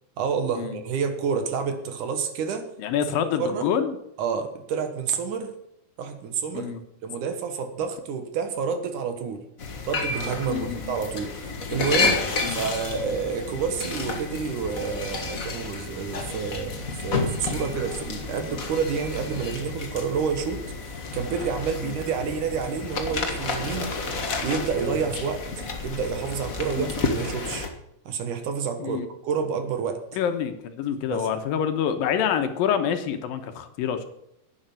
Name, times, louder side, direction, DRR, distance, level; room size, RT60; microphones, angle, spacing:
voice 1, 0.2-2.7 3.4-3.7 4.2-5.5 6.0-6.7 7.0-9.4 9.9-23.9 24.4-25.4 25.8-27.7 28.1-30.0 31.1-31.3, right 6 dB, 65° right, 7 dB, 2.6 m, -29 dB
voice 2, 2.8-4.0 6.5-6.8 10.5-11.0 12.4-12.6 21.8-22.0 26.8-26.9 28.8-29.1 30.1-34.1, left 8 dB, 80° left, 8 dB, 2.8 m, -27 dB
sound 1, 9.6-27.7, left 3 dB, 50° left, 1.0 m, -31 dB
11.0 x 9.2 x 7.7 m, 0.80 s
omnidirectional pair, 4.1 m